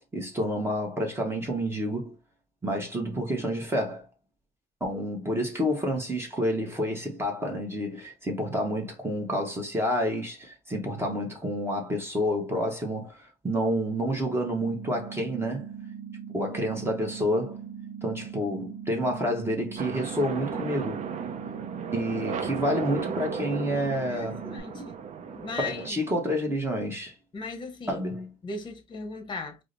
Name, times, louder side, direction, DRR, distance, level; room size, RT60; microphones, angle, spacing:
voice 1, 0.1-2.2 2.6-4.0 4.8-15.7 16.3-17.6 18.0-21.0 21.9-24.4 25.6-27.2 27.9-28.3, equal, 15° right, 0.9 m, -29 dB
sound 1, 14.6-24.6, right 8 dB, 90° right, 0.8 m, -40 dB
sound 2, 19.8-25.9, right 7 dB, 45° right, 0.5 m, -35 dB
voice 2, 24.1-25.0 25.3-26.0 27.3-28.0 28.4-29.6, left 3 dB, 30° left, 0.8 m, -37 dB
4.8 x 2.0 x 2.5 m
cardioid pair, 110°, 17 cm